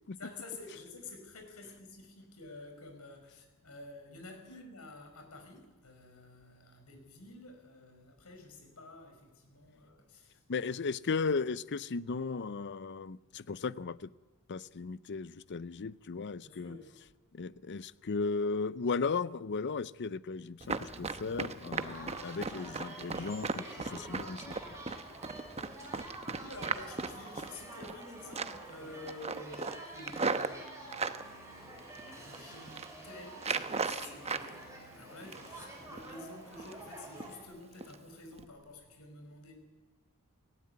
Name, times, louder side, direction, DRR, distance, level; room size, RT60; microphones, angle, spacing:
voice 1, 0.2-10.4 16.4-16.9 25.0-25.4 26.3-39.5, left 2 dB, 80° left, 5 dB, 5.2 m, -50 dB
voice 2, 10.5-14.1 14.5-16.8 17.3-24.6, left 4 dB, 55° left, 18 dB, 0.6 m, -36 dB
Run, 20.6-28.0 28.3-28.7 29.1-31.2 31.8-32.4 32.6-32.9 33.4-34.5 34.8-35.6 36.0-36.2 36.5-36.9 37.2-37.3 37.8-38.0 38.3-38.4, right 4 dB, 30° right, 0.9 m, -37 dB
sound 1, 21.7-37.4, right 2 dB, 15° right, 6.3 m, -48 dB
18.5 x 16.5 x 9.5 m, 1.3 s
head